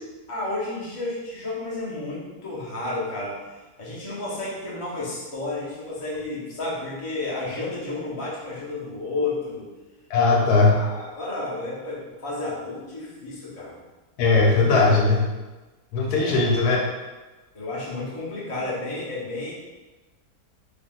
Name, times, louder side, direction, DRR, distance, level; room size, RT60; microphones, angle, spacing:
voice 1, 0.3-3.4 3.8-9.7 10.6-13.8 16.2-16.6 17.5-19.5, left 2 dB, 30° left, -7 dB, 0.6 m, -31 dB
voice 2, 10.1-10.8 14.2-15.3 15.9-16.8, left 3 dB, 85° left, -1 dB, 1.1 m, -19 dB
3.4 x 2.3 x 2.3 m, 1.2 s
omnidirectional pair, 1.6 m